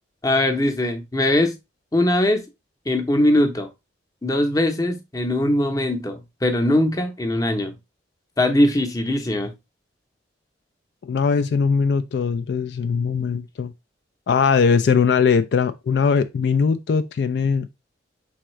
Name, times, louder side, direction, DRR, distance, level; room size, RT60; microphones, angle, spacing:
voice 1, 0.2-1.5 1.9-2.4 2.9-3.7 4.2-7.7 8.4-9.5, left 1 dB, 20° left, 0.7 m, -21 dB
voice 2, 11.0-13.7 14.3-17.7, left 5 dB, 65° left, 0.3 m, -20 dB
4.6 x 3.6 x 3.1 m
head